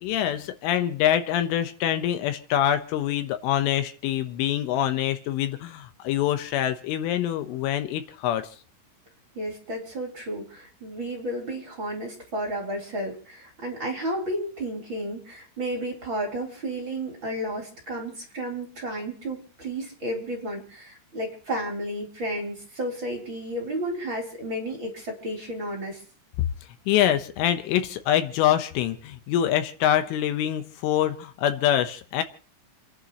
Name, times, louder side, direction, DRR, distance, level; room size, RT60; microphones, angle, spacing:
voice 1, 0.0-8.5 26.9-32.2, left 11 dB, 80° left, 3.5 m, -25 dB
voice 2, 9.3-26.0, right 1 dB, 25° right, 3.8 m, -32 dB
29.5 x 11.0 x 3.1 m
omnidirectional pair, 5.8 m